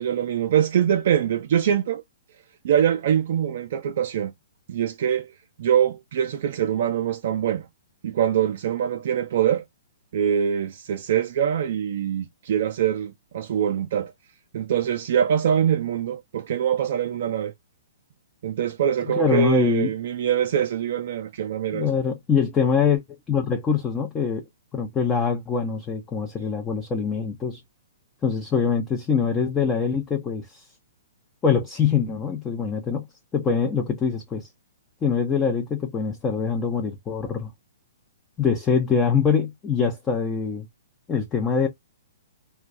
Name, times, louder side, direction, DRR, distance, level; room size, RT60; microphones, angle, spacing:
voice 1, 0.0-2.0 2.6-4.3 4.7-5.3 5.6-7.7 8.0-9.6 10.1-14.1 14.5-17.5 18.4-21.9, right 9 dB, 60° right, 0.4 m, -23 dB
voice 2, 19.2-19.9 21.7-23.0 23.3-24.4 24.7-27.6 28.2-30.6 31.4-33.1 33.3-34.5 35.0-37.5 38.4-40.7 41.1-41.7, left 6 dB, 20° left, 0.5 m, -23 dB
2.3 x 2.2 x 2.5 m
hypercardioid pair, 125°, 0 cm